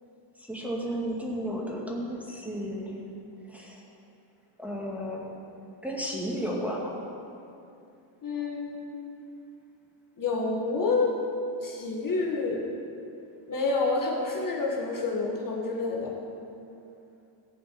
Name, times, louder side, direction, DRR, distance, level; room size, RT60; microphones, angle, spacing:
voice 1, 0.4-3.0 3.5-3.8 4.6-5.3 5.8-6.9, equal, 5° right, -4 dB, 2.1 m, -33 dB
voice 2, 8.2-9.0 10.2-11.2 11.6-12.6 13.5-16.1, left 3 dB, 40° left, -1 dB, 1.8 m, -28 dB
15.0 x 5.1 x 8.6 m, 2.6 s
cardioid pair, 105°, 48 cm